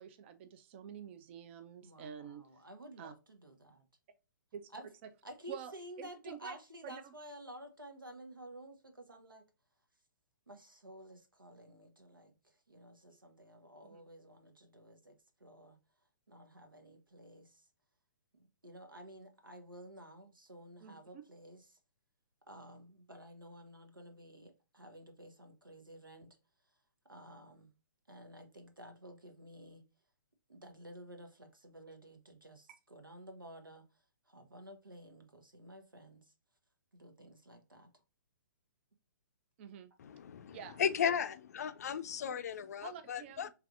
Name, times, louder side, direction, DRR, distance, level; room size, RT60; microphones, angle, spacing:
voice 1, 0.0-2.4 3.0-3.1 4.5-4.7 5.5-6.5 6.8-7.1 13.8-14.0 20.8-21.2 32.7-32.8 39.6-39.9 40.5-41.1 42.3-42.4 42.8-43.5, right 8 dB, 35° right, 0.5 m, -49 dB
voice 2, 1.8-3.9 4.7-4.9 5.2-9.4 10.5-15.8 16.3-17.7 18.3-21.8 22.5-26.4 26.7-26.8 27.1-27.7 28.1-29.8 30.5-36.3 36.9-37.9, right 1 dB, 85° right, 1.2 m, -53 dB
voice 3, 40.0-43.5, left 8 dB, 50° left, 0.4 m, -36 dB
4.6 x 3.3 x 2.4 m
figure-of-eight pair, 125°, 11 cm